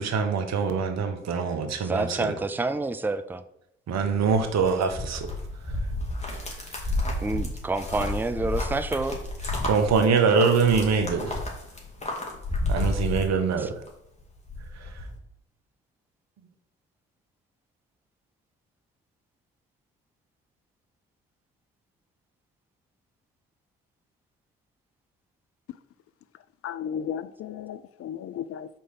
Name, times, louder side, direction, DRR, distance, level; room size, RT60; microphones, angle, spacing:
voice 1, 0.0-2.3 3.9-5.3 9.6-11.4 12.7-13.7, right 5 dB, 65° right, 1.0 m, -24 dB
voice 2, 1.8-3.4 7.2-9.2 13.6-13.7, right 3 dB, 5° right, 0.5 m, -28 dB
sound 1, 4.0-13.9 14.2-15.1, left 2 dB, 20° left, 2.2 m, -31 dB
voice 3, 26.6-28.7, left 8 dB, 50° left, 0.4 m, -34 dB
4.7 x 4.3 x 5.8 m
hypercardioid pair, 40°, 30 cm